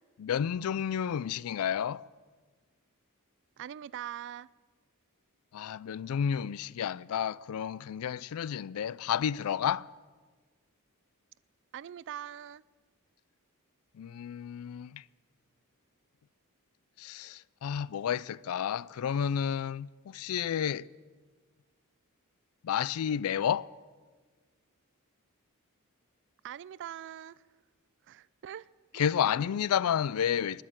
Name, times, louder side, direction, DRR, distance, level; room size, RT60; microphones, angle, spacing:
voice 1, 0.2-2.1 5.5-9.9 13.9-15.0 17.0-20.9 22.6-23.7 28.9-30.6, left 8 dB, 70° left, 0.3 m, -31 dB
voice 2, 3.6-4.5 11.7-12.6 26.4-27.4 28.1-28.7 28.9-29.1, right 10 dB, 55° right, 0.3 m, -42 dB
20.0 x 6.6 x 8.9 m
head